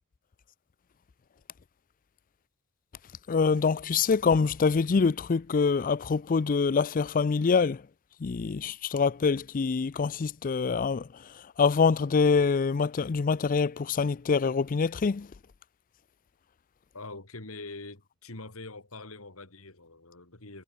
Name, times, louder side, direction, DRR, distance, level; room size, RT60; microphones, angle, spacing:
voice 1, 3.3-7.8 8.2-11.1 11.6-15.3, left 5 dB, 40° left, 0.4 m, -25 dB
voice 2, 16.9-20.6, left 2 dB, 85° left, 3.5 m, -44 dB
head